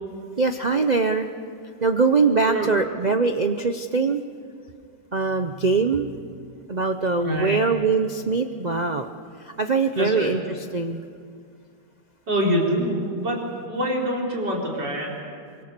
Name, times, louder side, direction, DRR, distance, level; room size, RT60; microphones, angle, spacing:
voice 1, 0.4-1.3 1.8-4.2 5.1-6.1 6.7-9.1 9.6-10.4 10.7-11.0, right 4 dB, 85° right, 7 dB, 0.3 m, -22 dB
voice 2, 7.2-7.6 10.0-10.3 12.3-13.4 13.6-15.1, equal, 65° right, -2 dB, 4.8 m, -25 dB
25.0 x 23.0 x 6.7 m, 2.3 s
omnidirectional pair, 2.0 m